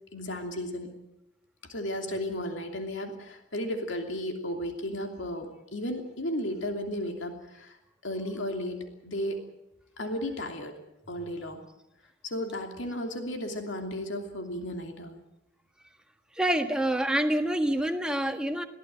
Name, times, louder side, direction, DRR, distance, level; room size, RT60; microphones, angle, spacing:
voice 1, 0.1-0.9 1.7-7.8 8.0-9.4 10.0-10.8 11.1-11.6 12.2-15.2, left 1 dB, 70° left, 4 dB, 2.9 m, -34 dB
voice 2, 16.4-18.6, right 1 dB, 5° right, 5 dB, 1.6 m, -26 dB
22.0 x 16.5 x 9.1 m, 0.87 s
head